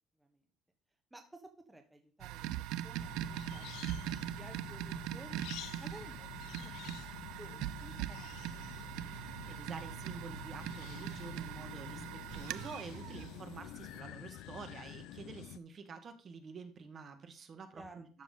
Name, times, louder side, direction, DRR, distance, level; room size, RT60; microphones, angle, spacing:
voice 1, 1.1-5.4 5.8-7.0 7.4-9.1 17.7-18.1, right 1 dB, 10° right, 5 dB, 1.2 m, -55 dB
sound 1, 2.2-14.0, right 13 dB, 80° right, 0.4 m, -42 dB
sound 2, 3.0-15.6, left 14 dB, 80° left, 0.4 m, -49 dB
voice 2, 9.5-18.2, right 5 dB, 40° right, 8 dB, 1.5 m, -48 dB
12.5 x 6.2 x 3.8 m, 0.38 s
cardioid pair, 130°, 0 cm